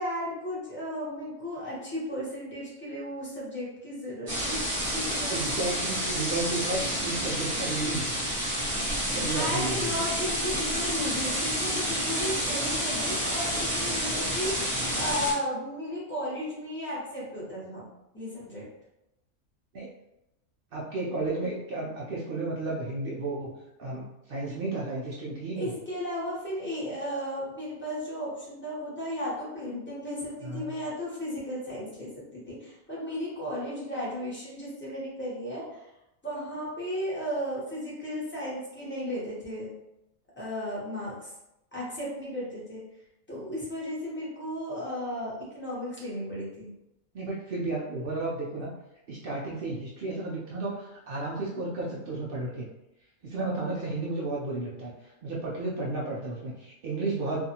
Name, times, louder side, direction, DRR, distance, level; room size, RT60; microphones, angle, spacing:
voice 1, 0.0-5.5 9.1-17.9 18.1-18.6 25.5-35.9 36.2-39.7 40.4-41.3 41.7-42.8 43.3-46.7, equal, 10° left, -8 dB, 0.8 m, -35 dB
sound 1, 4.3-15.3, equal, 25° right, 0.8 m, -29 dB
voice 2, 5.3-8.1 9.1-9.9 19.7-19.9 20.7-25.7 30.4-30.6 47.1-48.7 49.1-52.7 53.2-54.9 55.2-57.4, right 2 dB, 75° right, -4 dB, 0.5 m, -33 dB
2.6 x 2.4 x 2.7 m, 0.88 s
omnidirectional pair, 1.5 m